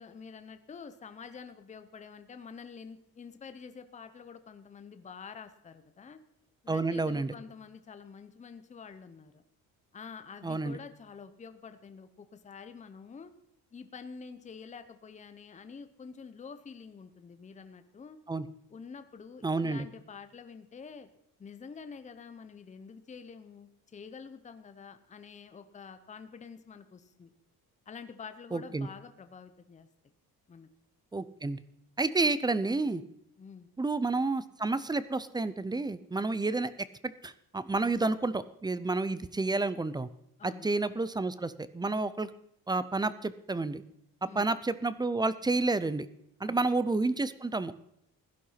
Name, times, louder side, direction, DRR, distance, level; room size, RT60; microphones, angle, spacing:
voice 1, 0.0-6.2 6.6-9.4 9.9-13.3 13.7-18.2 18.7-21.1 21.4-27.3 27.9-29.9 30.5-30.7 33.4-33.7 40.4-40.7 44.2-44.5 46.4-46.7, left 5 dB, 20° left, 10 dB, 0.8 m, -48 dB
voice 2, 6.7-7.3 10.4-10.8 18.3-18.5 19.4-19.9 28.5-28.9 31.1-31.6 32.0-33.0 33.8-36.7 37.0-40.1 40.4-42.3 42.7-43.8 44.2-46.1 46.4-47.7, right 3 dB, 10° right, 15 dB, 0.5 m, -30 dB
16.0 x 11.5 x 5.7 m, 0.76 s
cardioid pair, 170°, 37 cm